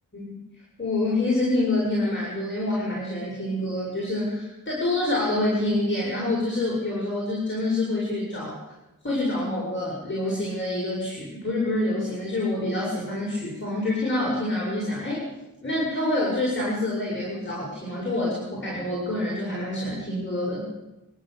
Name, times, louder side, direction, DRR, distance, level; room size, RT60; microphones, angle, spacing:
voice 1, 0.8-8.6 9.0-15.2 15.6-20.7, left 1 dB, 35° left, -6 dB, 7.5 m, -27 dB
29.5 x 12.0 x 8.2 m, 1.0 s
wide cardioid pair, 95°, 34 cm